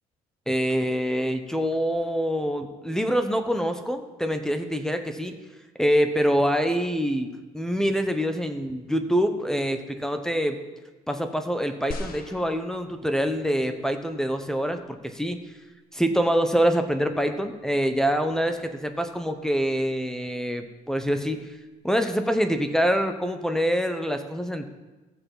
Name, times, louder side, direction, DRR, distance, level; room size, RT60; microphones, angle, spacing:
voice 1, 0.5-5.3 5.8-10.6 11.1-15.4 15.9-21.4 21.8-24.7, equal, 5° left, 7 dB, 1.1 m, -25 dB
sound 1, 11.9-13.4 14.2-14.3, left 2 dB, 60° left, 1.4 m, -38 dB
16.0 x 5.9 x 7.5 m, 1.2 s
cardioid pair, 110°, 17 cm